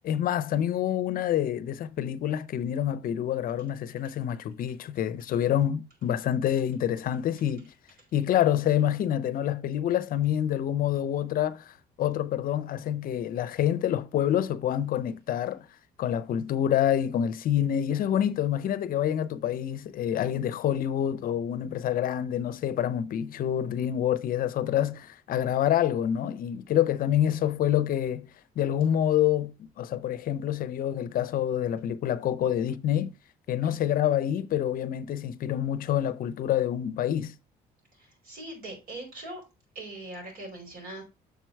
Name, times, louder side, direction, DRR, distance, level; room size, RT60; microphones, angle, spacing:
voice 1, 0.0-7.7 8.1-15.7 16.0-28.3 28.6-33.1 33.5-37.3, left 10 dB, 55° left, 0.6 m, -27 dB
voice 2, 38.3-39.4 39.7-41.0, right 2 dB, 60° right, 5.0 m, -40 dB
6.8 x 4.6 x 4.5 m
cardioid pair, 110°, 17 cm